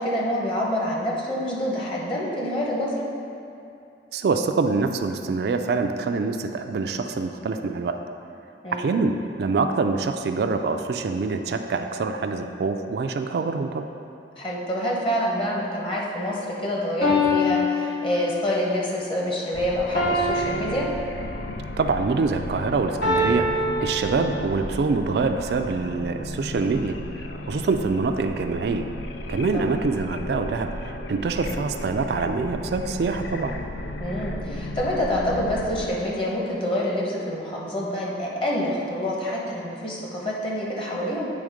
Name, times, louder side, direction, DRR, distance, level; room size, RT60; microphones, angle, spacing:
voice 1, 0.0-3.0 8.6-8.9 14.4-20.9 29.5-29.8 34.0-41.3, equal, 30° left, -3 dB, 1.1 m, -27 dB
voice 2, 4.1-8.0 8.7-13.8 21.8-27.0 27.5-28.9 29.3-33.5, right 4 dB, 65° right, 6 dB, 0.3 m, -25 dB
sound 1, 16.3-16.4 17.0-18.6 19.9-21.6 23.0-24.6, left 2 dB, 70° left, 1.6 m, -25 dB
sound 2, 19.5-35.9, left 1 dB, 90° left, 0.5 m, -35 dB
8.7 x 3.5 x 5.0 m, 2.7 s
head